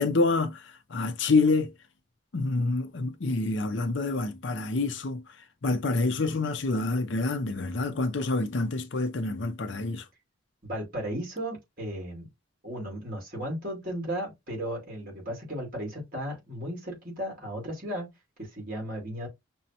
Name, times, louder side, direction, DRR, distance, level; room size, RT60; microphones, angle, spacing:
voice 1, 0.0-1.7 2.3-5.2 5.6-10.1, left 3 dB, 65° left, 0.6 m, -27 dB
voice 2, 10.6-12.3 12.6-18.1 18.4-19.3, equal, 45° right, 2.1 m, -35 dB
6.0 x 2.2 x 2.7 m
head